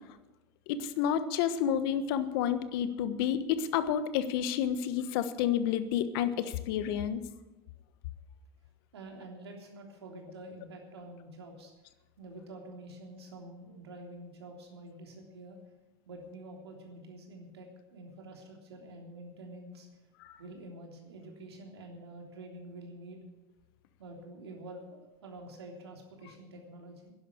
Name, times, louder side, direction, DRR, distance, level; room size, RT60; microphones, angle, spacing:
voice 1, 0.7-7.2 20.2-20.4, left 9 dB, 65° left, 12 dB, 1.3 m, -30 dB
voice 2, 8.9-11.7 12.2-15.6 16.1-19.9 20.4-23.2 24.0-27.1, right 1 dB, 85° right, 1 dB, 3.3 m, -47 dB
11.5 x 11.0 x 8.6 m, 1.1 s
hypercardioid pair, 90°, 13 cm